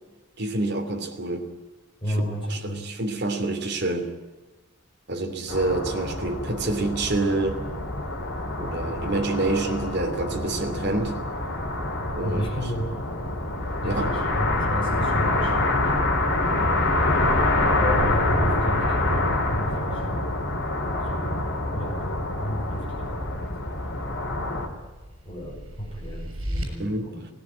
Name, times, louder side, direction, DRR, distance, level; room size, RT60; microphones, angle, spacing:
voice 1, 0.4-1.5 2.5-4.1 5.1-7.6 8.5-11.2 12.1-12.4 13.8-14.1 26.8-27.1, right 2 dB, 55° right, 3 dB, 3.0 m, -27 dB
voice 2, 2.0-2.9 12.2-13.0 13.8-16.0 17.7-20.2 21.0-21.5 21.7-23.6 23.8-23.9 24.4-24.6 25.2-27.3, equal, 25° left, -3 dB, 6.1 m, -32 dB
sound 1, 5.5-24.7, left 2 dB, 55° left, 3.9 m, -26 dB
sound 2, 24.6-26.6, equal, 80° right, 6.8 m, -35 dB
18.5 x 17.0 x 8.9 m, 1.2 s
head